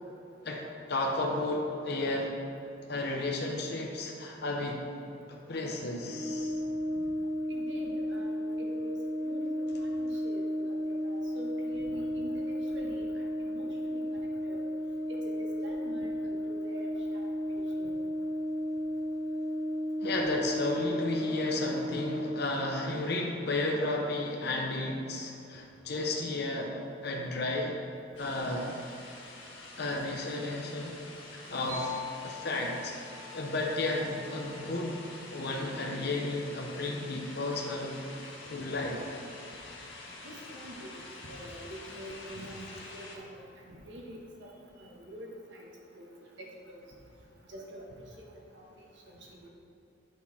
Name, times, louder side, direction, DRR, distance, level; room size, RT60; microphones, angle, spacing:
voice 1, 0.4-2.3 2.9-4.8 5.3-6.6 20.0-26.7 27.0-27.8 28.2-28.7 29.8-30.9 31.3-32.9 33.3-35.0 35.3-38.0 38.5-39.0, left 2 dB, 55° left, 0 dB, 0.8 m, -33 dB
Brass instrument, 6.1-22.4, equal, 25° right, 1.9 m, -33 dB
voice 2, 7.5-9.0 9.2-9.5 9.8-14.6 15.1-17.9 40.2-46.1 46.4-46.8 47.5-47.9 48.2-48.3 48.5-48.6 49.0-49.5, equal, 70° right, -2 dB, 1.4 m, -46 dB
sound 1, 28.2-43.2, left 2 dB, 80° left, 1.5 m, -47 dB
sound 2, 31.7-35.4, left 7 dB, 40° right, 1.5 m, -44 dB
8.2 x 6.2 x 4.3 m, 2.8 s
head